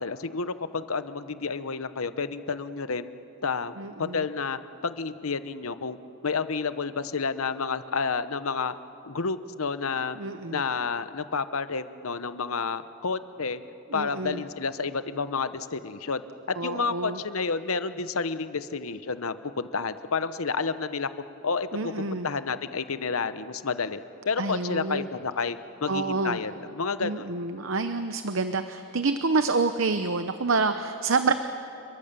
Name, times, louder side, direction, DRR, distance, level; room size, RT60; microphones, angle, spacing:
voice 1, 0.0-3.1 3.4-6.0 6.2-8.7 9.1-10.2 10.5-13.6 13.9-16.2 16.6-21.1 21.4-24.0 24.2-27.3, left 4 dB, 80° left, 12 dB, 0.9 m, -30 dB
voice 2, 3.8-4.2 10.2-10.6 13.9-14.4 16.6-17.2 21.7-22.3 24.4-25.1 25.9-26.4 27.0-31.3, right 3 dB, 65° right, 9 dB, 0.8 m, -27 dB
29.0 x 22.5 x 6.9 m, 2.8 s
head